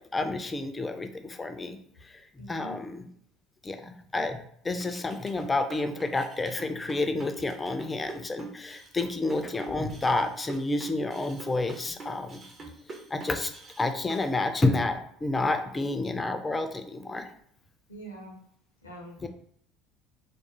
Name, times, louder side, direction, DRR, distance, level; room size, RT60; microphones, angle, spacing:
voice 1, 0.1-1.8 2.4-3.1 3.6-12.4 13.1-13.5 13.8-17.3 19.2-19.3, left 2 dB, 20° left, 7 dB, 0.3 m, -29 dB
voice 2, 2.4-2.8 11.6-11.7 17.9-18.4 18.8-19.2, right 1 dB, 85° left, -1 dB, 0.5 m, -44 dB
sound 1, 4.8-14.3, right 4 dB, 35° right, 0.5 m, -44 dB
2.3 x 2.0 x 3.0 m, 0.66 s
figure-of-eight pair, 65°, 0 cm